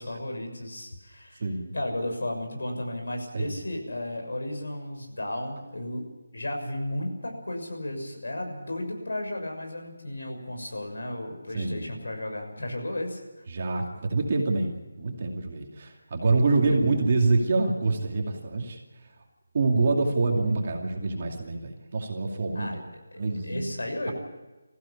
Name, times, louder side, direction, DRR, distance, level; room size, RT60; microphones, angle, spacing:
voice 1, 0.0-1.5 1.7-6.1 6.3-13.2 16.4-16.8 22.5-22.8 23.1-24.1, left 1 dB, 85° left, 3 dB, 6.4 m, -34 dB
voice 2, 1.4-1.7 3.3-3.5 11.5-11.9 13.5-18.8 19.5-22.8 23.2-23.7, right 3 dB, 30° right, 1 dB, 2.5 m, -26 dB
20.5 x 15.5 x 8.6 m, 1.2 s
figure-of-eight pair, 180°, 0 cm